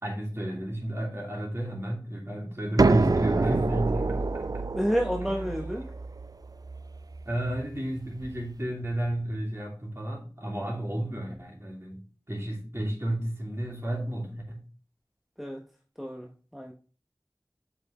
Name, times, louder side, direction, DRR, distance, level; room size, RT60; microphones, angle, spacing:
voice 1, 0.0-4.6 5.2-5.6 7.2-14.6, right 1 dB, 30° right, -2 dB, 2.9 m, -32 dB
sound 1, 2.8-8.4, right 3 dB, 50° right, 0.3 m, -28 dB
voice 2, 4.7-5.8 15.4-15.6 16.0-16.7, equal, ahead, 0 dB, 1.0 m, -30 dB
7.4 x 5.8 x 3.0 m, 0.38 s
wide cardioid pair, 40°, 8 cm